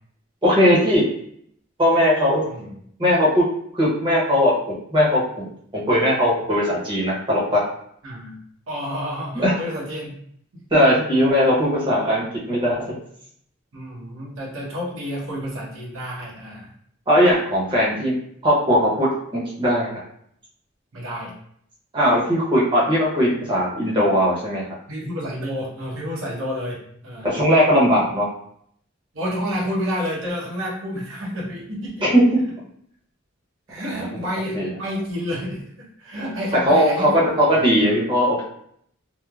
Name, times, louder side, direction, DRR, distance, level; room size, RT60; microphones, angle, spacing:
voice 1, 0.4-1.0 1.8-2.5 3.0-3.4 3.7-4.5 4.9-5.5 5.7-7.6 9.3-9.5 10.7-12.9 17.1-18.1 18.4-19.9 21.9-24.6 27.2-28.2 32.0-32.2 33.9-34.2 34.5-34.7 36.6-38.4, equal, 25° right, -6 dB, 0.8 m, -19 dB
voice 2, 8.0-8.4 8.7-10.1 13.7-16.7 20.9-21.3 24.9-27.3 29.1-32.1 33.7-37.6, equal, 80° right, -5 dB, 0.8 m, -30 dB
3.1 x 2.0 x 2.3 m, 0.68 s
head